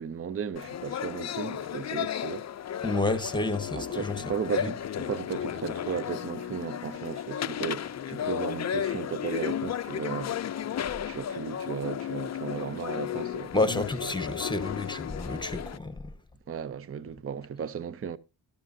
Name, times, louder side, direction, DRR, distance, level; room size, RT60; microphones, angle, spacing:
voice 1, 0.0-2.5 3.7-10.4 11.1-13.6 16.5-18.2, right 7 dB, 30° right, 0.6 m, -35 dB
sound 1, 0.6-15.8, left 9 dB, 40° left, 0.5 m, -34 dB
voice 2, 2.8-4.2 4.6-4.7 13.5-16.1, left 2 dB, 10° left, 1.2 m, -30 dB
12.5 x 12.5 x 2.6 m
cardioid pair, 90°, 43 cm